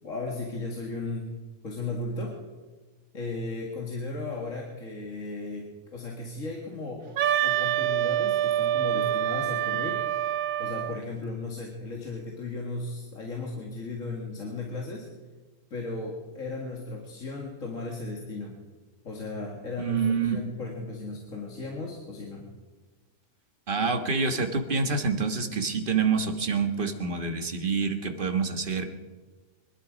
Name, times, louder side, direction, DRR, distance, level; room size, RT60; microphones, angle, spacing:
voice 1, 0.0-1.3 1.6-2.4 3.1-10.0 10.6-15.1 15.7-18.6 19.0-22.5, left 3 dB, 60° left, -1 dB, 2.3 m, -36 dB
Wind instrument woodwind instrument, 7.2-11.0, right 11 dB, 70° right, 1.0 m, -26 dB
voice 2, 19.8-20.4 23.7-28.8, right 5 dB, 35° right, 6 dB, 1.5 m, -27 dB
24.5 x 11.5 x 5.1 m, 1.3 s
omnidirectional pair, 1.5 m